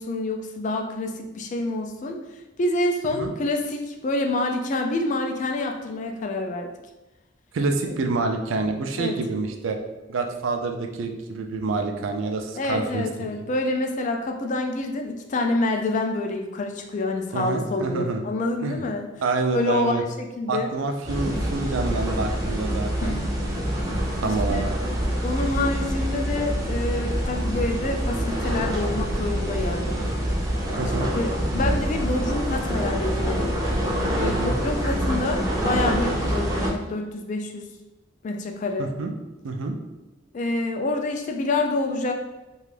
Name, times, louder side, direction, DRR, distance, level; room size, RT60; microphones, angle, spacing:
voice 1, 0.0-2.2 2.6-6.7 9.0-9.2 12.6-19.1 19.5-20.7 23.0-23.2 24.2-24.7 25.2-30.0 31.1-33.5 34.2-37.7 38.2-38.9 40.3-42.1, left 2 dB, 40° left, 4 dB, 0.3 m, -27 dB
voice 2, 7.5-9.8 10.1-13.0 17.3-18.2 18.6-18.8 19.2-20.0 20.5-23.2 24.2-24.7 30.8-31.1 34.2-34.6 38.8-39.1 39.4-39.7, right 3 dB, 85° right, 4 dB, 0.4 m, -27 dB
sound 1, 21.0-36.7, equal, 20° right, 0.5 m, -26 dB
2.5 x 2.3 x 3.2 m, 1.1 s
head